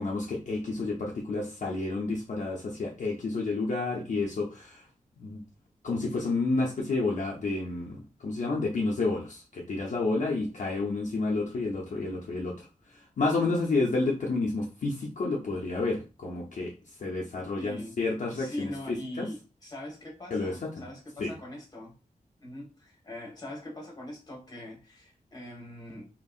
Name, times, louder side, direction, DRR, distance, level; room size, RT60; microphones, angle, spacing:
voice 1, 0.0-4.9 5.2-5.4 5.8-12.7 12.9-16.7 17.0-18.7 19.2-19.3 20.3-20.8 21.2-21.3, left 3 dB, 65° left, 0.6 m, -30 dB
voice 2, 17.6-17.9 18.3-21.9 22.4-26.1, left 1 dB, 30° left, 1.2 m, -42 dB
2.9 x 2.7 x 2.3 m
wide cardioid pair, 110°, 14 cm